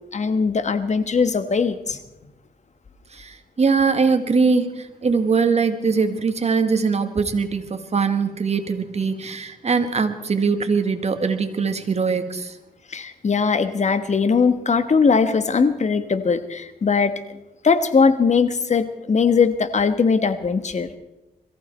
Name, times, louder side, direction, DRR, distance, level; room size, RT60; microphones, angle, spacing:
voice 1, 0.1-2.0 12.9-17.1 17.6-20.9, left 5 dB, 50° left, 11 dB, 1.3 m, -20 dB
voice 2, 3.1-12.6, right 5 dB, 45° right, 7 dB, 1.7 m, -22 dB
22.0 x 14.5 x 4.4 m, 0.97 s
cardioid pair, 75°, 15 cm